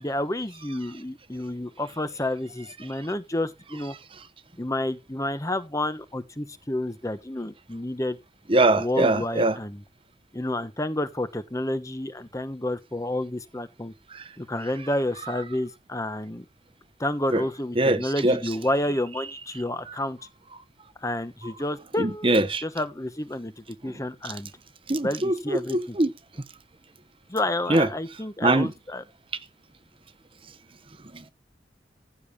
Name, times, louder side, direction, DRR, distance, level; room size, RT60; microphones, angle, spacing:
voice 1, 0.0-4.0 4.6-8.2 8.8-9.8 10.3-13.9 14.4-16.4 17.0-20.2 21.0-24.5 25.0-26.0 27.3-29.0, left 1 dB, 20° left, 1.1 m, -30 dB
voice 2, 8.5-9.6 14.1-14.3 17.3-17.4 17.8-18.4 19.9-20.0 22.0-22.6 23.8-23.9 24.9-26.1 27.7-27.9 28.4-28.7 31.1-31.3, right 2 dB, 30° right, 1.0 m, -22 dB
15.0 x 5.1 x 7.2 m
head